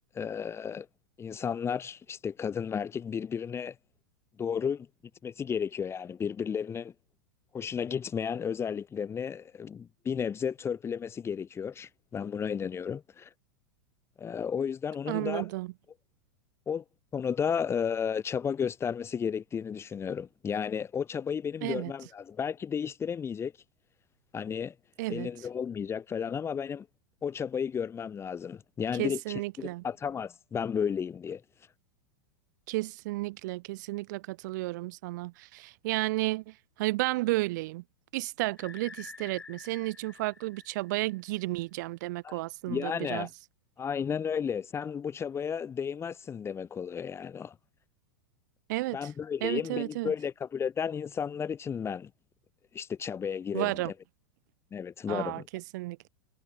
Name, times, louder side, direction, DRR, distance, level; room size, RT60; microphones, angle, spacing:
voice 1, 0.1-0.9 1.2-3.7 4.4-4.9 5.2-6.9 7.5-13.3 14.2-15.5 16.7-16.8 17.1-23.5 24.3-24.7 25.1-26.9 27.2-31.4 42.2-42.4 42.7-43.3 43.8-47.6 48.9-52.1 52.7-53.9 54.7-55.5, left 7 dB, 20° left, 4.5 m, -33 dB
voice 2, 15.1-15.7 21.6-21.9 25.0-25.3 29.0-29.8 32.7-37.8 38.1-43.3 48.7-49.1 49.4-50.1 53.5-53.9 55.1-56.1, right 20 dB, 55° right, 1.2 m, -32 dB
sound 1, 38.6-41.4, left 5 dB, 85° left, 3.8 m, -49 dB
hypercardioid pair, 95°, 11 cm